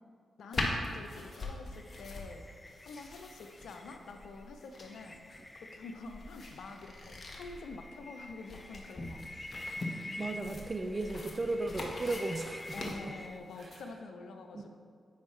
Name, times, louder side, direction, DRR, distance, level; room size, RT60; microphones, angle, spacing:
voice 1, 0.4-2.5 2.8-5.2 5.5-10.1 12.7-14.8, left 3 dB, 75° left, 5 dB, 0.6 m, -47 dB
sound 1, 0.5-13.8, left 2 dB, 50° left, 1.2 m, -42 dB
sound 2, 1.7-13.4, left 1 dB, 25° left, 0.5 m, -48 dB
voice 2, 10.2-13.1 13.6-13.8 14.5-14.6, right 2 dB, 40° right, 6 dB, 0.5 m, -36 dB
8.0 x 5.3 x 3.2 m, 2.1 s
supercardioid pair, 40°, 0 cm